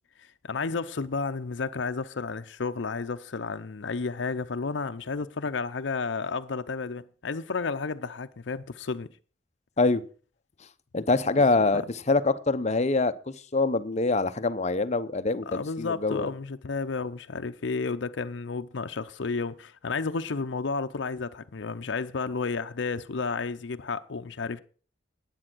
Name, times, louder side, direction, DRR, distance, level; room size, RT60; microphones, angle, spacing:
voice 1, 0.2-9.1 11.4-11.5 11.7-11.9 15.5-24.6, left 4 dB, 75° left, 0.6 m, -32 dB
voice 2, 10.9-11.8 12.1-13.1 13.5-16.3, left 3 dB, 40° left, 0.7 m, -24 dB
10.0 x 8.8 x 6.1 m
head